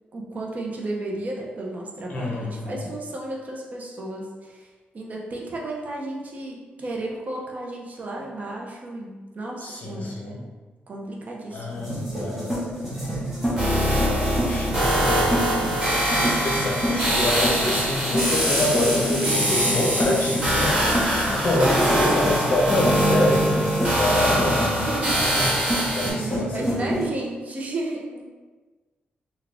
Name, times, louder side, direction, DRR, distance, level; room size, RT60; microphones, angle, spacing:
voice 1, 0.1-4.7 4.9-10.5 10.9-11.9 19.2-19.5 21.6-21.7 22.0-22.1 24.9-25.3 26.0-28.2, right 2 dB, 45° right, -2 dB, 0.6 m, -33 dB
voice 2, 2.1-2.9 9.6-10.5 11.5-12.5 13.5-15.4 16.2-23.5 23.9-25.5 25.9-27.0, left 1 dB, 45° left, -2 dB, 0.7 m, -27 dB
sound 1, 11.7-27.0, equal, 10° right, 1.1 m, -29 dB
sound 2, 13.6-26.1, equal, 25° right, 1.5 m, -23 dB
3.6 x 2.3 x 3.4 m, 1.3 s
wide cardioid pair, 125°, 4 cm